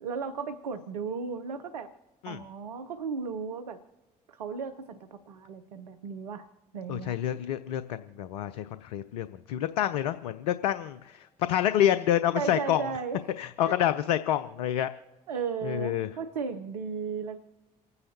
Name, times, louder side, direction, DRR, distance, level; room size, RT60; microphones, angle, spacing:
voice 1, 0.0-1.9 2.3-3.8 4.3-6.5 6.7-7.2 12.3-13.2 13.7-13.8 15.3-17.4, right 5 dB, 90° right, 9 dB, 0.6 m, -35 dB
voice 2, 6.9-12.8 13.4-14.9 15.6-16.1, left 11 dB, 85° left, 11 dB, 0.5 m, -28 dB
28.5 x 9.6 x 2.8 m, 1.3 s
hypercardioid pair, 50°, 20 cm